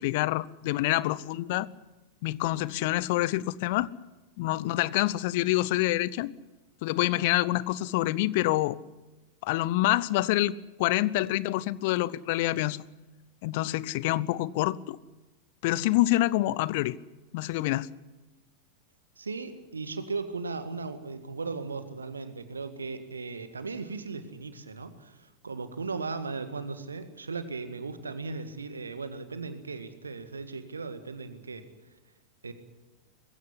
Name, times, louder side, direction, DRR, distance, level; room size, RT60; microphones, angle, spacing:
voice 1, 0.0-1.7 2.2-3.9 4.4-6.3 6.8-8.8 9.4-12.8 13.4-15.0 15.6-17.0 17.3-17.9, left 17 dB, 50° left, 0.6 m, -27 dB
voice 2, 19.2-31.6 32.4-32.5, right 4 dB, 75° right, 1.8 m, -37 dB
21.0 x 16.0 x 9.9 m
figure-of-eight pair, 90°, 0 cm